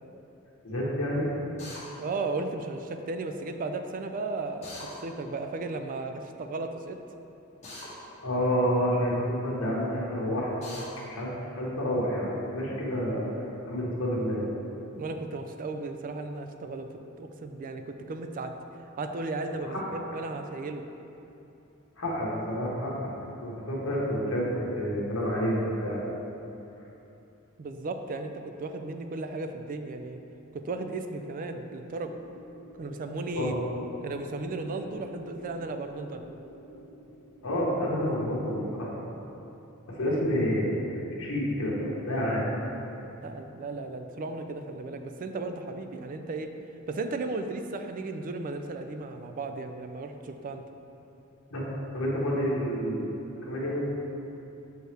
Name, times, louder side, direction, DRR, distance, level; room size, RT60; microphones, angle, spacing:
voice 1, 0.6-1.3 8.2-10.5 11.1-11.3 11.6-13.2 13.6-14.5 19.6-19.8 22.0-22.9 23.4-26.0 33.3-33.6 37.4-38.9 39.9-42.5 51.5-51.6 51.9-53.1 53.4-53.8, equal, 80° left, -6 dB, 1.2 m, -29 dB
Drill, 1.6-1.8 4.6-4.9 7.6-7.9 10.6-10.9, left 2 dB, 30° left, 1.4 m, -42 dB
voice 2, 2.0-4.7 5.0-7.0 15.0-16.9 17.2-18.5 19.0-20.8 27.6-30.2 30.5-32.2 32.8-33.5 34.0-36.3 40.1-40.2 43.2-46.5 46.9-50.6, right 3 dB, 40° right, 6 dB, 0.3 m, -35 dB
sound 1, 31.3-39.5, equal, 65° left, 1.0 m, -49 dB
6.5 x 4.5 x 3.3 m, 2.9 s
head